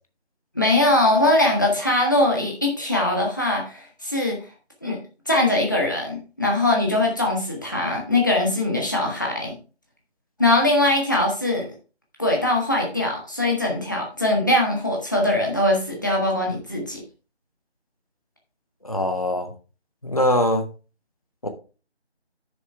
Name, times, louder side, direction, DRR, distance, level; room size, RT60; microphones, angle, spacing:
voice 1, 0.5-4.4 4.8-5.0 5.3-9.5 10.4-11.7 12.2-17.0, left 1 dB, 15° left, 0 dB, 1.3 m, -21 dB
voice 2, 18.8-19.5 20.0-20.7 21.4-21.5, left 1 dB, 35° left, 7 dB, 1.0 m, -22 dB
10.0 x 6.6 x 3.4 m, 0.35 s
figure-of-eight pair, 165°, 33 cm